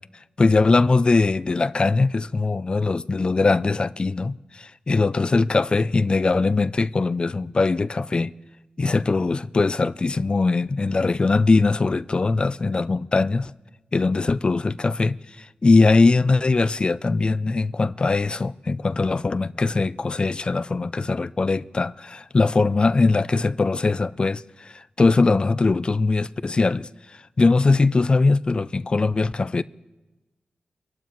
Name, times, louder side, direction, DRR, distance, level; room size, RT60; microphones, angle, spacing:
voice 1, 0.4-8.3 8.8-13.5 13.9-26.9 27.4-29.6, left 3 dB, 35° left, 0.3 m, -21 dB
25.0 x 12.0 x 3.1 m
wide cardioid pair, 95°, 3 cm